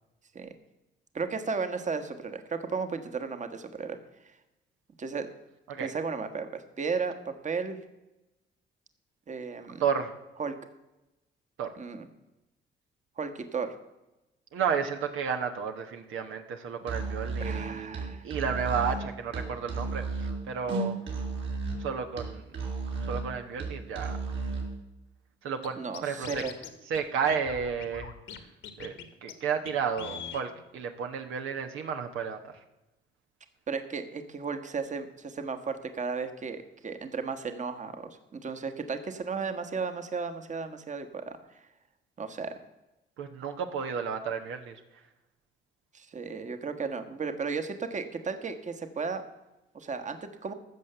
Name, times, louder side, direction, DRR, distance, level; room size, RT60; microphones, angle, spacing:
voice 1, 1.1-4.0 5.0-5.3 5.8-7.8 9.3-9.8 10.4-10.5 11.8-12.1 13.2-13.7 17.4-18.3 25.8-26.5 33.7-41.4 42.2-42.5 45.9-49.2 49.7-50.5, right 5 dB, 40° right, 8 dB, 1.4 m, -34 dB
voice 2, 9.8-10.1 11.6-11.7 14.5-21.1 21.8-22.6 23.0-24.2 25.4-26.4 26.9-28.1 28.8-32.5 43.2-44.8, right 6 dB, 85° right, 6 dB, 1.2 m, -32 dB
Musical instrument, 16.8-24.8, right 3 dB, 70° right, 4.0 m, -34 dB
Scratching (performance technique), 25.6-25.7 25.9-26.7 26.9-27.0 27.3-28.4 28.6-29.0 29.3-29.4 29.7-29.8 30.0-30.4, left 8 dB, 75° left, 1.6 m, -41 dB
15.0 x 6.5 x 6.8 m, 0.98 s
cardioid pair, 90°, 20 cm